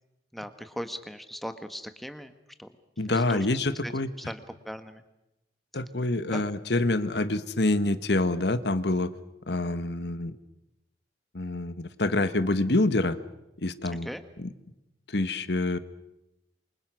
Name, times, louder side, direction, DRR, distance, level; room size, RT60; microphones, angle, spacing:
voice 1, 0.3-2.3 2.6-2.7 3.1-3.5 3.8-3.9 4.3-5.0 6.3-6.4 14.0-14.2, equal, ahead, 9 dB, 1.5 m, -38 dB
voice 2, 3.0-4.1 5.7-9.1 9.5-10.4 11.3-13.2 13.6-14.1 14.4-14.5 15.1-15.8, left 2 dB, 70° left, 13 dB, 1.4 m, -26 dB
28.0 x 25.0 x 6.3 m, 0.91 s
head